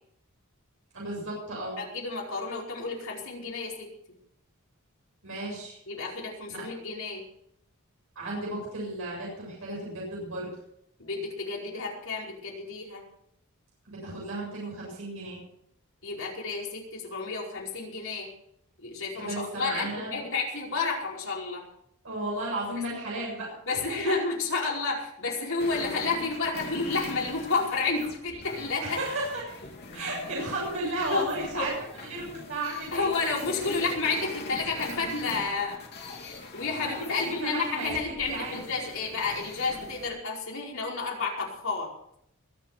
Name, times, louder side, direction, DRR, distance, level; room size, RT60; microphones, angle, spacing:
voice 1, 0.9-1.8 5.2-5.8 6.5-6.6 8.2-10.5 13.9-15.4 19.2-20.2 22.0-24.1 28.8-29.4 29.9-31.7 32.1-33.1 36.8-38.0 38.3-38.6, right 2 dB, 70° right, -4 dB, 7.4 m, -34 dB
voice 2, 1.8-3.9 5.9-7.2 11.0-13.0 16.0-18.3 18.8-21.6 23.6-29.0 31.1-31.3 31.6-31.7 32.9-35.8 36.5-41.9, left 4 dB, 65° left, -2 dB, 5.0 m, -31 dB
sound 1, 25.6-40.0, left 3 dB, 50° left, 3.6 m, -42 dB
22.5 x 8.1 x 5.9 m, 0.73 s
head